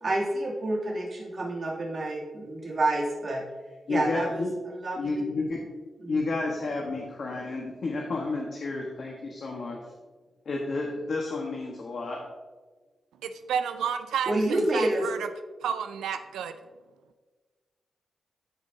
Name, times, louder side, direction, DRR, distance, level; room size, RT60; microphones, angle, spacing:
voice 1, 0.0-3.4 3.9-5.2 6.0-6.2 14.3-15.1, right 1 dB, 55° right, -4 dB, 2.6 m, -29 dB
voice 2, 3.9-4.5 5.0-5.6 6.1-9.8 10.4-12.2, left 3 dB, 65° left, -1 dB, 1.3 m, -31 dB
voice 3, 13.2-15.3 15.6-16.5, right 7 dB, 85° right, 9 dB, 0.4 m, -31 dB
13.5 x 5.3 x 2.7 m, 1.3 s
supercardioid pair, 45°, 0 cm